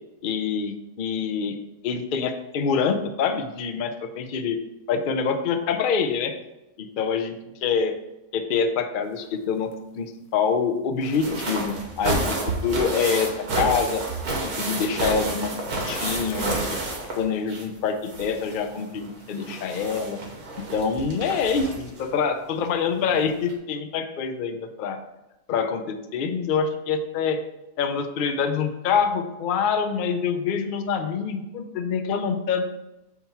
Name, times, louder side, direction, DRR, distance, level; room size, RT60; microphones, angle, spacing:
voice 1, 0.2-1.6 1.8-4.6 4.9-6.4 6.8-7.9 8.3-14.0 14.4-16.8 17.2-20.2 20.6-25.0 25.5-27.4 27.8-32.7, left 6 dB, 65° left, 7 dB, 0.5 m, -26 dB
sound 1, 9.1-9.8 11.1-11.3 11.8-12.0 15.8-17.5, left 5 dB, 80° left, 1.2 m, -40 dB
sound 2, 11.0-17.8 18.0-22.0 23.1-23.2 23.5-23.6, right 2 dB, 75° right, 1.7 m, -30 dB
7.3 x 3.0 x 5.7 m, 0.96 s
omnidirectional pair, 1.6 m